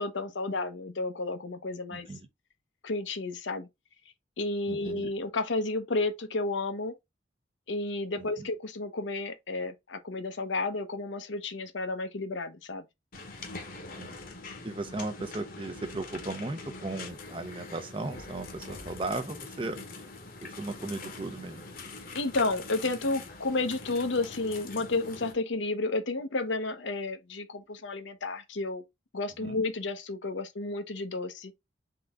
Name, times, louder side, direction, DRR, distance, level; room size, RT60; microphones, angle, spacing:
voice 1, 0.0-2.1 2.8-3.7 4.4-6.9 7.7-12.8 22.1-28.8 29.1-31.5, left 2 dB, 80° left, 0.8 m, -32 dB
voice 2, 1.9-2.3 4.7-5.1 8.4-8.5 14.0-14.2 14.6-19.8 20.4-21.7 29.4-29.6, right 2 dB, 25° right, 0.6 m, -36 dB
sound 1, 13.1-25.3, left 3 dB, 50° left, 1.0 m, -43 dB
3.8 x 3.4 x 3.5 m
head